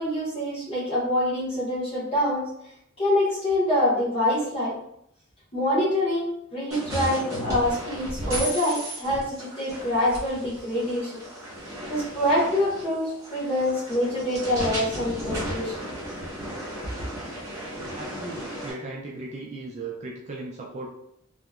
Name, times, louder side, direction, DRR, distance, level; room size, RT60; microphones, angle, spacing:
voice 1, 0.0-2.5 3.0-4.8 5.5-11.1 11.9-15.7 17.0-17.1, left 1 dB, 25° left, -8 dB, 1.0 m, -25 dB
sound 1, 6.7-18.7, equal, 15° right, 0.8 m, -35 dB
voice 2, 17.9-20.9, right 2 dB, 35° right, -2 dB, 0.3 m, -37 dB
2.8 x 2.2 x 2.3 m, 0.74 s
head